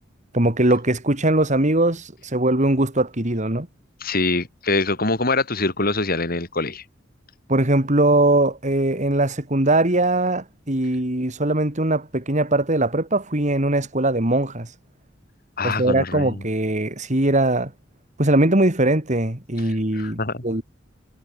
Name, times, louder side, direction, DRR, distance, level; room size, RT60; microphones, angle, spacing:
voice 1, 0.3-3.7 7.5-14.7 15.6-17.7 18.2-20.6, right 1 dB, 40° right, 3.0 m, -21 dB
voice 2, 4.0-6.8 15.6-16.4 19.9-20.4, left 3 dB, 50° left, 4.8 m, -24 dB
head